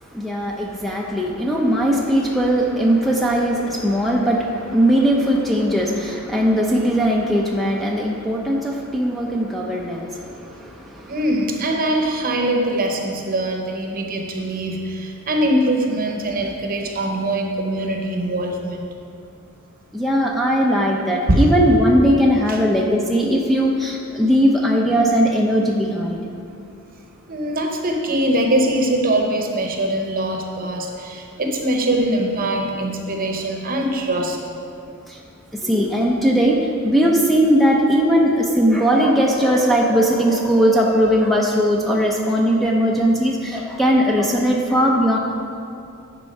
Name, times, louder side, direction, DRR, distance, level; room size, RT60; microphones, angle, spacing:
voice 1, 0.1-11.1 19.9-26.2 35.1-35.2 35.6-36.6 36.8-45.2, equal, ahead, -2 dB, 0.5 m, -19 dB
voice 2, 11.1-18.9 21.3-21.6 22.5-22.6 27.3-34.4, right 1 dB, 40° right, 2 dB, 0.9 m, -22 dB
9.7 x 4.6 x 5.3 m, 2.5 s
head